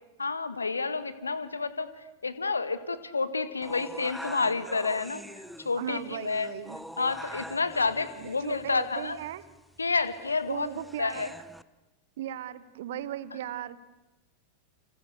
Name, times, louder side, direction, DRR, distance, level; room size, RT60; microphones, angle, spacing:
voice 1, 0.2-1.9 2.2-5.2 5.6-6.5 7.0-9.2 9.8-10.7 11.0-11.3, left 4 dB, 75° left, 13 dB, 1.6 m, -29 dB
sound 1, 3.6-11.6, equal, ahead, 0.9 m, -45 dB
voice 2, 5.8-6.8 8.2-9.4 10.5-11.3 12.2-13.8, right 11 dB, 55° right, 17 dB, 1.3 m, -37 dB
30.0 x 27.0 x 6.8 m, 1.0 s
figure-of-eight pair, 90°, 0 cm